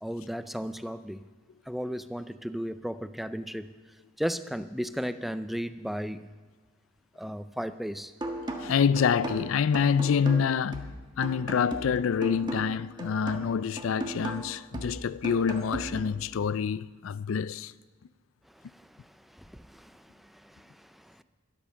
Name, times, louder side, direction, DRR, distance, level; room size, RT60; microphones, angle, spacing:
voice 1, 0.0-1.2 1.7-3.7 4.2-6.3 7.2-8.1 18.5-21.2, equal, ahead, 0.4 m, -35 dB
sound 1, 8.2-16.2, right 1 dB, 20° right, 1.5 m, -37 dB
voice 2, 8.6-17.7, left 6 dB, 80° left, 0.4 m, -27 dB
12.5 x 12.5 x 6.4 m
head